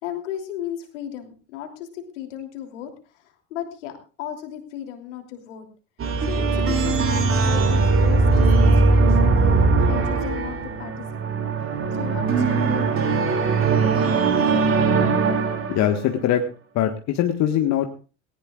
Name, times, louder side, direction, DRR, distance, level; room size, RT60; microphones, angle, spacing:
voice 1, 0.0-2.9 3.5-5.7 6.3-8.6 8.9-9.4 9.9-11.4 12.0-13.2, left 10 dB, 70° left, 4 dB, 3.1 m, -35 dB
sound 1, 6.0-16.0, right 3 dB, 35° right, 2.8 m, -20 dB
voice 2, 15.7-16.4 16.7-17.9, left 11 dB, 45° left, 5 dB, 1.6 m, -21 dB
18.5 x 18.5 x 2.4 m, 0.35 s
hypercardioid pair, 75°, 38 cm